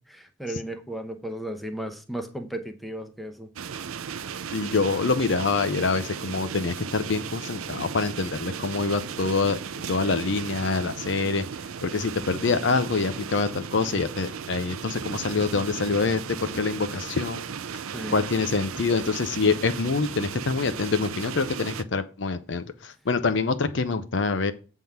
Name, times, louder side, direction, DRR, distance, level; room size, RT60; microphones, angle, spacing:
voice 1, 0.1-3.5 17.9-18.2, right 1 dB, ahead, 5 dB, 0.7 m, -35 dB
sound 1, 3.6-21.8, right 7 dB, 90° right, 0.5 m, -36 dB
voice 2, 4.5-9.6 9.9-11.4 11.8-17.5 18.1-24.5, left 4 dB, 60° left, 11 dB, 0.6 m, -25 dB
7.9 x 3.6 x 5.8 m, 0.36 s
head